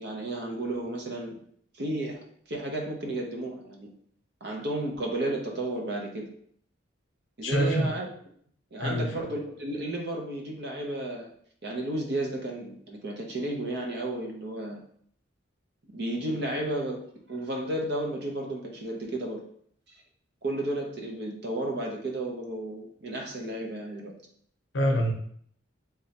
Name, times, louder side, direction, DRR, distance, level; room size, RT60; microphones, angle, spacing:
voice 1, 0.0-1.4 1.7-2.2 2.5-3.9 4.4-6.3 7.4-8.0 8.7-11.3 11.6-14.8 15.9-17.0 17.3-19.4 20.4-24.1, right 1 dB, 55° right, 1 dB, 0.8 m, -33 dB
voice 2, 7.4-8.0 8.8-9.3 24.7-25.1, equal, 75° left, 3 dB, 0.7 m, -26 dB
3.6 x 3.2 x 2.8 m, 0.62 s
head